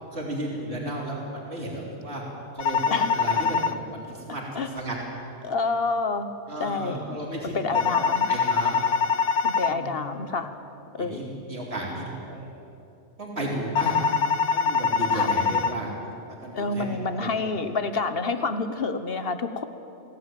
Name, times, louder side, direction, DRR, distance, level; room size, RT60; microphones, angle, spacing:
voice 1, 0.1-2.2 2.5-5.0 6.5-8.8 9.7-10.2 11.0-12.5 13.2-14.0 14.5-15.9 16.3-16.9 17.2-17.5, right 1 dB, 60° right, -2 dB, 3.9 m, -34 dB
sound 1, 2.6-3.7 7.7-9.7 13.8-15.7, left 6 dB, 90° left, 1.3 m, -23 dB
voice 2, 5.4-6.3 6.6-7.0 7.5-8.3 9.4-10.5 11.0-11.4 15.1-15.3 16.5-19.6, left 3 dB, 55° left, 10 dB, 1.4 m, -28 dB
22.5 x 16.5 x 9.3 m, 2.8 s
omnidirectional pair, 1.2 m